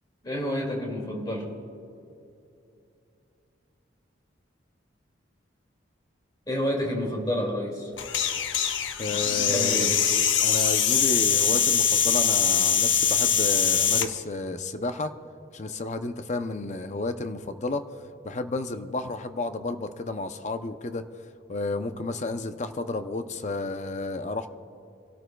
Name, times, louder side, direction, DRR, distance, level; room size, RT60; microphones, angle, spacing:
voice 1, 0.2-1.5 6.5-7.9 9.1-10.0, left 1 dB, 20° left, 0 dB, 2.3 m, -29 dB
sound 1, 8.0-14.1, left 8 dB, 75° left, 0.8 m, -23 dB
voice 2, 9.0-9.9 10.4-15.1 15.5-17.8 18.2-21.1 21.5-24.5, left 2 dB, 35° left, 9 dB, 0.6 m, -31 dB
27.0 x 12.5 x 2.3 m, 2.7 s
head